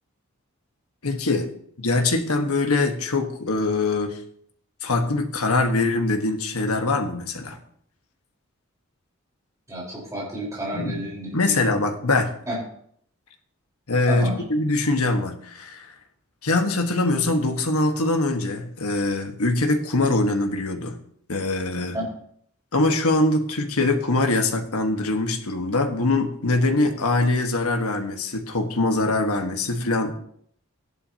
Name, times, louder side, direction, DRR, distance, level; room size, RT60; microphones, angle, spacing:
voice 1, 1.0-1.5 1.8-4.2 4.8-7.6 10.7-11.0 11.3-12.3 13.9-15.9 16.4-21.0 21.3-21.9 22.7-30.1, left 2 dB, 85° left, 5 dB, 1.5 m, -23 dB
voice 2, 9.7-11.6 12.5-12.6 14.1-14.4 21.9-22.1, right 1 dB, 15° right, -5 dB, 4.5 m, -30 dB
14.0 x 11.0 x 2.9 m, 0.64 s
head